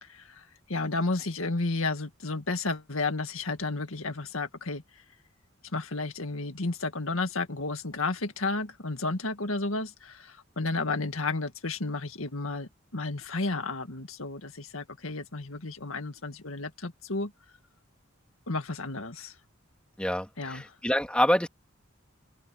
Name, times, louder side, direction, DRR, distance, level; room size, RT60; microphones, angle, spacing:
voice 1, 0.0-0.4 0.7-4.8 5.7-17.3 18.5-19.3 20.4-20.6, left 3 dB, 85° left, 1.9 m, -32 dB
voice 2, 20.0-21.5, left 1 dB, 5° left, 2.4 m, -26 dB
head